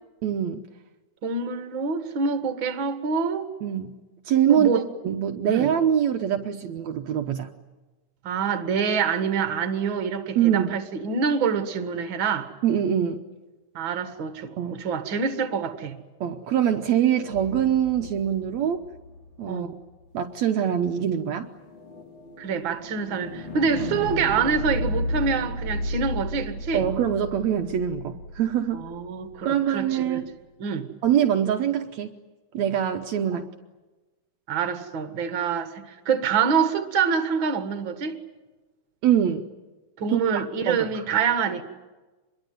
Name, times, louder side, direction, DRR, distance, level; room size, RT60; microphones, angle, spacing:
voice 1, 0.2-0.6 3.6-3.9 4.3-7.5 10.4-10.7 12.6-13.2 14.6-14.8 16.2-18.9 19.4-19.7 20.1-21.5 26.7-28.9 29.4-30.3 31.0-32.2 32.5-33.5 39.0-39.5 40.1-41.0, right 9 dB, 70° right, 2.2 m, -24 dB
voice 2, 1.2-3.5 4.5-4.9 5.5-5.7 8.2-12.5 13.7-16.0 19.5-19.7 22.4-26.9 28.7-30.2 30.6-30.9 33.3-33.4 34.5-38.2 40.0-41.6, right 6 dB, 45° right, 2.2 m, -26 dB
sound 1, 17.3-19.5 21.3-29.4, left 1 dB, 40° left, 4.3 m, -33 dB
26.5 x 22.0 x 9.4 m
omnidirectional pair, 3.4 m